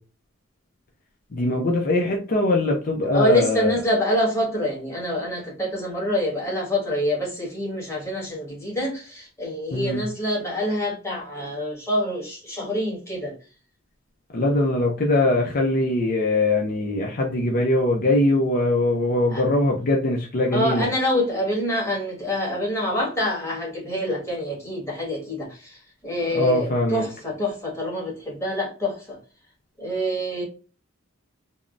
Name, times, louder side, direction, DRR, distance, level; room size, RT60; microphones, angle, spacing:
voice 1, 1.3-3.7 9.7-10.0 14.3-20.9 26.3-27.0, left 1 dB, 45° left, 0.5 m, -22 dB
voice 2, 3.1-13.3 19.3-19.5 20.5-29.2 29.8-30.4, equal, 15° left, 1.4 m, -26 dB
3.6 x 2.0 x 2.4 m
head